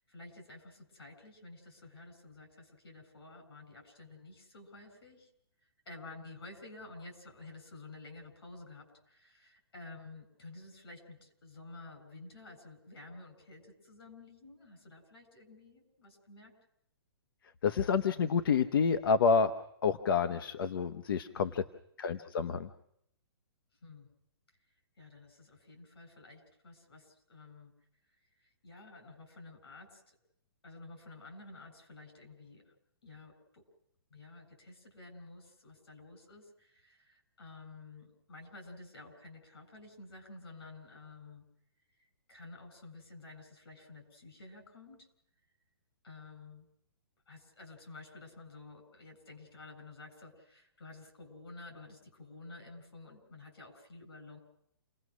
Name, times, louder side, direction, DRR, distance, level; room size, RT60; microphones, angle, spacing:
voice 1, 0.0-5.3 5.6-16.5 21.3-21.7 23.8-24.1 25.0-27.7 28.4-30.2 30.6-32.7 33.0-33.6 34.1-41.4 42.0-45.1 46.0-46.7 47.3-54.4, left 2 dB, 80° left, 5 dB, 7.6 m, -52 dB
voice 2, 17.6-19.5 19.8-21.6 22.0-22.7, left 5 dB, 60° left, 9 dB, 1.0 m, -28 dB
29.0 x 18.0 x 6.3 m, 0.74 s
hypercardioid pair, 160°, 13 cm